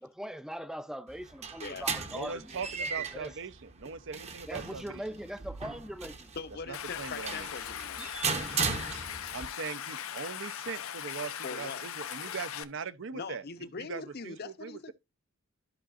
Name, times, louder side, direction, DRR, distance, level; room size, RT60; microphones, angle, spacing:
voice 1, 0.0-2.6 3.1-3.3 4.5-6.3 8.0-8.4, equal, 5° right, 0.4 m, -41 dB
sound 1, 1.1-9.5, right 5 dB, 30° right, 0.8 m, -37 dB
voice 2, 2.1-4.8 6.7-7.5 9.3-14.9, right 5 dB, 65° right, 0.6 m, -40 dB
voice 3, 6.4-8.0 11.4-11.8 13.1-14.9, left 4 dB, 50° left, 0.7 m, -41 dB
Stream, 6.7-12.6, left 9 dB, 85° left, 0.7 m, -39 dB
13.0 x 5.0 x 2.4 m
head